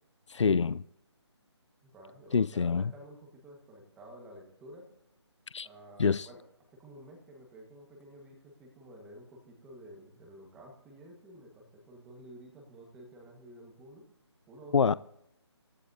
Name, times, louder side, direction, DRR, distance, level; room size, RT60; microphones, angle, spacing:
voice 1, 0.3-0.8 2.3-2.8 5.5-5.7 6.0-6.3 14.7-14.9, left 5 dB, 85° left, 0.5 m, -26 dB
voice 2, 1.8-4.8 5.6-6.4 6.7-14.0 14.5-14.7, right 1 dB, 5° right, 1.5 m, -51 dB
27.5 x 15.0 x 2.7 m
hypercardioid pair, 175°, 15 cm